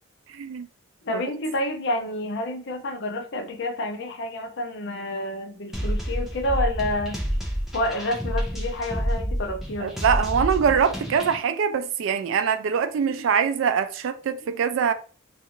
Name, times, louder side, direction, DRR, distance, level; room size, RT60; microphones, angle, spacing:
voice 1, 0.3-0.7 1.1-1.2 9.8-14.9, right 7 dB, 70° right, 0.3 m, -23 dB
voice 2, 1.0-7.2 7.7-9.9, left 1 dB, 55° left, 0.5 m, -29 dB
sound 1, 5.7-11.4, equal, ahead, 0.5 m, -29 dB
2.5 x 2.4 x 2.9 m
head